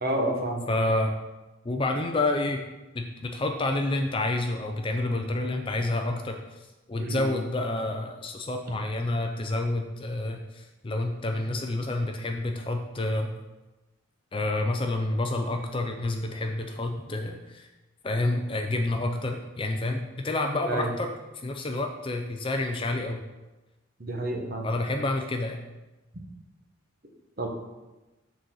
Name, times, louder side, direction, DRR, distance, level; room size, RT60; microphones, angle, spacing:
voice 1, 0.0-0.7 7.0-7.3 20.6-20.9 24.0-24.7 27.4-27.5, right 1 dB, 45° right, 2 dB, 1.1 m, -29 dB
voice 2, 0.7-1.2 1.6-2.6 2.9-13.3 14.3-17.7 18.0-23.2 24.6-25.6, left 2 dB, 25° left, 4 dB, 0.4 m, -29 dB
6.4 x 4.1 x 6.2 m, 1.1 s
head